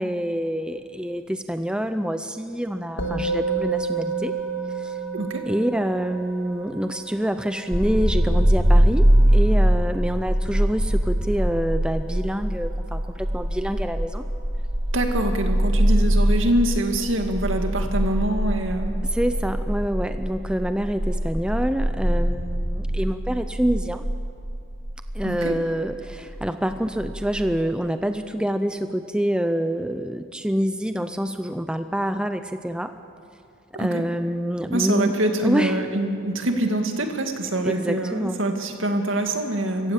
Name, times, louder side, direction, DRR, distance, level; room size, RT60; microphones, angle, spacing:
voice 1, 0.0-4.3 4.7-5.0 5.5-14.3 19.0-24.1 25.1-32.9 33.8-35.1 35.4-35.8 37.6-38.4, equal, 5° right, 9 dB, 0.5 m, -26 dB
Musical instrument, 3.0-12.5, right 4 dB, 65° left, 2.3 m, -32 dB
voice 2, 5.1-5.4 14.9-18.9 25.2-25.5 33.7-34.0 34.7-39.9, right 1 dB, 75° right, 4 dB, 2.2 m, -25 dB
sound 1, 7.7-27.6, equal, 45° right, 1.9 m, -23 dB
25.0 x 15.5 x 7.5 m, 2.5 s
head